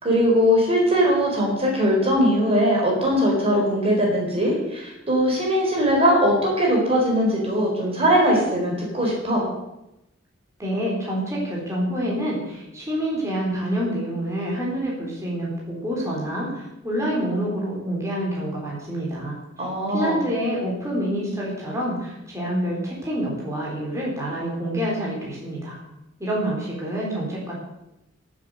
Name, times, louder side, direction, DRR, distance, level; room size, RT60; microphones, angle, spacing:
voice 1, 0.0-9.4 19.6-20.2, equal, 30° right, -2 dB, 4.2 m, -20 dB
voice 2, 10.6-19.4 19.9-25.8 26.2-27.5, equal, 15° right, -5 dB, 4.1 m, -27 dB
14.0 x 7.7 x 7.9 m, 0.90 s
head